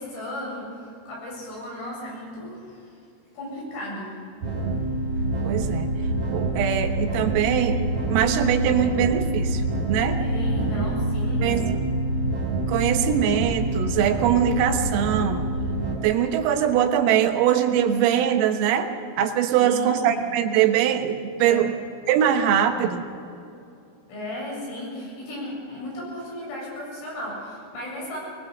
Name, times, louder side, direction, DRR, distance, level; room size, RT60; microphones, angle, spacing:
voice 1, 0.0-3.0 3.3-4.2 10.2-11.5 19.5-20.2 21.4-21.7 24.1-28.2, left 1 dB, 75° left, -4 dB, 10.5 m, -35 dB
sound 1, 4.4-16.0, right 2 dB, 35° right, 6.0 m, -26 dB
voice 2, 5.4-7.8 8.1-9.6 9.9-10.2 11.4-11.6 12.7-15.5 16.0-21.8 22.1-23.1, right 9 dB, 85° right, 5 dB, 3.9 m, -22 dB
22.0 x 21.0 x 6.7 m, 2.6 s
omnidirectional pair, 5.9 m